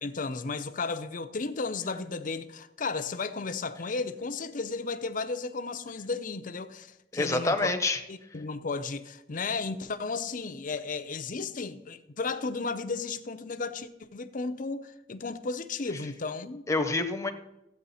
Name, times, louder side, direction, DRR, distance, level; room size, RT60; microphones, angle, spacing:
voice 1, 0.0-7.7 8.1-16.6, left 4 dB, 45° left, 0.6 m, -34 dB
voice 2, 7.1-8.0 16.7-17.3, left 2 dB, 15° left, 0.8 m, -27 dB
14.0 x 8.6 x 4.2 m
head